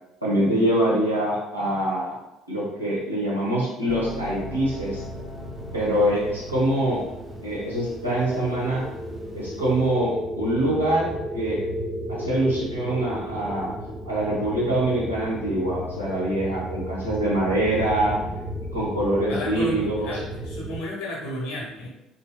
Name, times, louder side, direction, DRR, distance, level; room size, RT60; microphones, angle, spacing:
voice 1, 0.2-2.2 2.5-5.0 5.7-7.0 7.4-8.9 9.3-11.6 12.1-13.7 14.0-18.2 18.7-20.1, right 1 dB, 90° right, -8 dB, 0.6 m, -24 dB
sound 1, 3.9-9.9, left 2 dB, 20° right, 0.7 m, -41 dB
sound 2, 4.4-20.8, equal, 5° left, 0.4 m, -34 dB
voice 2, 19.3-21.9, left 1 dB, 65° left, -3 dB, 0.7 m, -32 dB
2.6 x 2.2 x 2.2 m, 0.96 s
figure-of-eight pair, 55°, 0 cm